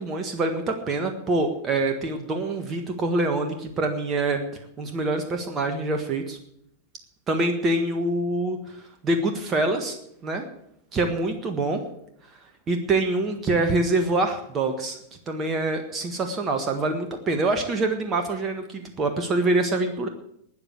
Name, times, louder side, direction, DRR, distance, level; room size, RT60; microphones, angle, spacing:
voice 1, 0.0-4.4 4.8-6.4 7.3-10.0 10.2-10.5 10.9-11.8 12.7-15.0 15.3-20.1, right 2 dB, 25° right, 5 dB, 1.6 m, -25 dB
12.5 x 9.3 x 8.4 m, 0.73 s
figure-of-eight pair, 90°, 0 cm